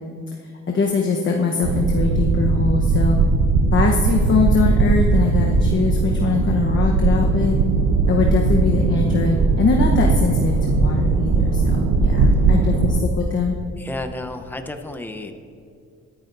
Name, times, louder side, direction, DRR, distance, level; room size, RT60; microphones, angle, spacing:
voice 1, 0.7-3.2 3.7-7.6 8.1-13.5, left 4 dB, 40° left, 0 dB, 1.1 m, -22 dB
sound 1, 1.6-13.0, right 3 dB, 90° right, 0.9 m, -19 dB
voice 2, 13.8-15.3, left 2 dB, 5° left, 6 dB, 0.8 m, -32 dB
18.5 x 10.0 x 2.7 m, 2.4 s
cardioid pair, 90°, 30 cm